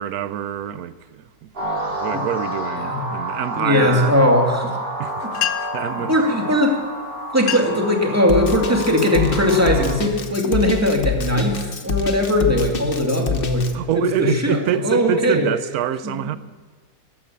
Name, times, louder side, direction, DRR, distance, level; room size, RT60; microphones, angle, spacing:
voice 1, 0.0-4.1 5.0-6.2 13.7-16.4, right 10 dB, 85° right, 1.1 m, -26 dB
sound 1, 1.5-9.9, right 1 dB, 35° right, 4.3 m, -29 dB
voice 2, 3.5-4.7 5.2-5.3 6.1-6.8 7.3-13.7 13.9-15.5 16.0-16.1, left 1 dB, 10° right, 2.2 m, -19 dB
sound 2, 5.1-5.2 5.3-5.9 6.8-6.9 7.3-7.9 8.4-8.7 9.4-9.6 10.2-11.4, left 11 dB, 80° left, 1.3 m, -29 dB
Drum kit, 8.3-13.7, left 5 dB, 45° left, 1.1 m, -26 dB
13.5 x 12.0 x 8.6 m
omnidirectional pair, 1.5 m